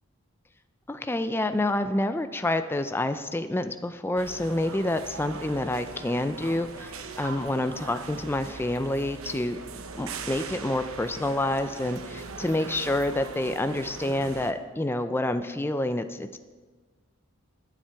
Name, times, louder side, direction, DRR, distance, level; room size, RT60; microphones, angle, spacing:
voice 1, 0.9-9.6 10.0-16.4, left 1 dB, 10° left, 9 dB, 0.4 m, -28 dB
sound 1, 4.2-14.5, right 4 dB, 80° right, 1.0 m, -40 dB
20.5 x 7.4 x 4.5 m, 1.4 s
head